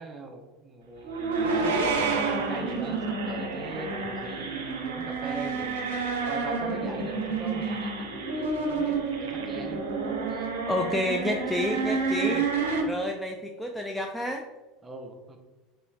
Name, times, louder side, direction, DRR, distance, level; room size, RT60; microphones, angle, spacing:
voice 1, 0.0-5.8 6.3-9.8 12.3-12.4 14.8-15.4, right 3 dB, 20° right, 3 dB, 0.7 m, -39 dB
sound 1, 1.0-12.8, right 4 dB, 75° right, 0.6 m, -29 dB
voice 2, 10.3-12.5 12.9-14.4, left 1 dB, 5° left, 1 dB, 0.3 m, -30 dB
3.9 x 3.1 x 2.3 m, 1.1 s
figure-of-eight pair, 75°, 0 cm